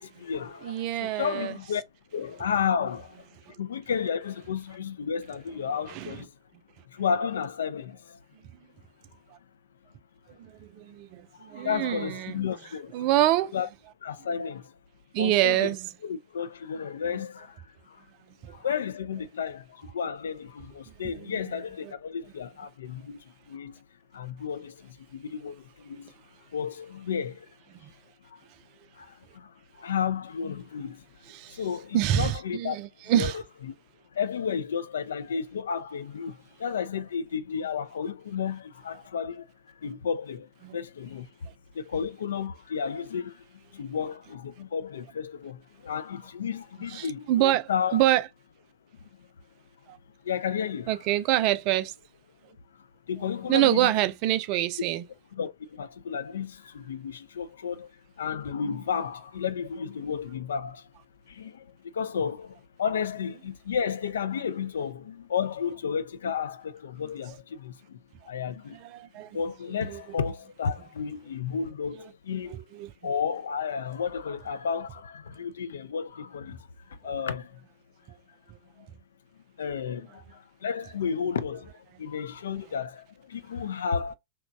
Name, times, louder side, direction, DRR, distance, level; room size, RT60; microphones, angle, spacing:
voice 1, 0.0-1.8 2.1-3.3 3.6-6.3 6.9-8.2 11.3-12.9 13.5-13.7 14.0-14.7 15.2-15.7 16.0-18.0 18.5-23.8 24.1-26.1 26.5-27.5 28.2-28.4 28.9-31.1 31.5-32.8 33.2-33.3 33.7-33.8 34.1-39.5 39.8-41.3 41.7-48.0 49.0-49.3 50.2-50.9 52.7-53.9 55.3-60.9 61.3-68.8 69.3-72.6 73.0-77.7 78.8-78.9 79.6-84.1, left 7 dB, 65° left, 0.3 m, -32 dB
voice 2, 0.6-1.6 3.5-3.6 5.9-6.3 9.3-9.4 10.3-12.4 12.9-13.5 15.1-15.9 17.1-17.2 18.4-18.6 21.0-21.6 27.7-27.9 31.3-31.6 31.9-33.4 40.6-40.8 46.9-48.3 49.9-50.0 50.9-51.9 53.2-55.0 68.2-68.3 68.7-69.4 69.7-70.2 71.9-72.0 72.5-72.9, right 13 dB, 45° right, 0.4 m, -27 dB
2.9 x 2.1 x 2.5 m
figure-of-eight pair, 90°, 0 cm